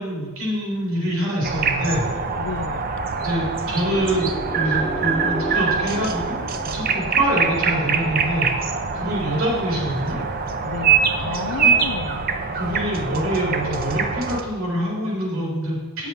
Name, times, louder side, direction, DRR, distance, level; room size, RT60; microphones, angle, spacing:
voice 1, 0.0-2.1 3.2-6.4 6.7-8.5 8.9-10.2 11.5-11.8 12.5-16.1, right 1 dB, 65° right, -4 dB, 3.9 m, -25 dB
sound 1, 1.4-14.4, right 5 dB, 40° right, 0.7 m, -24 dB
voice 2, 2.4-2.9 10.6-12.3, left 5 dB, 75° left, 11 dB, 0.5 m, -32 dB
sound 2, 3.7-7.5, right 1 dB, 15° left, 0.9 m, -34 dB
9.8 x 7.3 x 5.6 m, 1.3 s
head